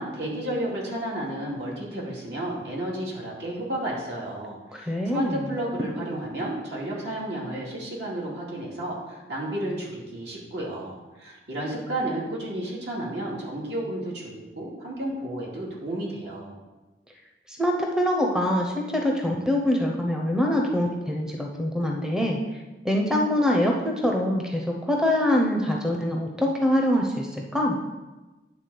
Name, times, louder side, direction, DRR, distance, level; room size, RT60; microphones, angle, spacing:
voice 1, 0.0-16.5, right 1 dB, 75° right, -4 dB, 2.4 m, -32 dB
voice 2, 4.7-5.4 17.5-22.4 22.8-27.8, left 1 dB, 5° right, 0 dB, 0.7 m, -24 dB
9.6 x 3.6 x 6.8 m, 1.1 s
head